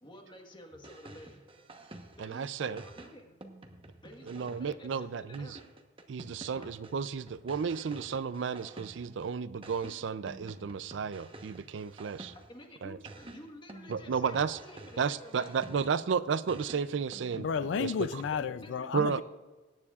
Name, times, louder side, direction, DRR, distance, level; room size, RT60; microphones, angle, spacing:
voice 1, 0.0-1.5 2.2-3.3 4.0-5.6 6.5-6.7 12.5-16.0 18.6-19.2, left 1 dB, 25° left, 1.4 m, -51 dB
sound 1, 0.7-2.3 2.8-9.2 9.6-12.6 13.0-16.1 16.5-18.5, right 2 dB, 30° right, 1.0 m, -50 dB
voice 2, 2.2-2.8 4.3-5.6 6.1-12.3 12.8-13.0 13.9-14.6 15.0-17.5 17.8-17.9 18.9-19.2, right 6 dB, 80° right, 0.4 m, -33 dB
voice 3, 17.4-19.2, left 6 dB, 75° left, 0.4 m, -32 dB
21.0 x 9.7 x 2.4 m
head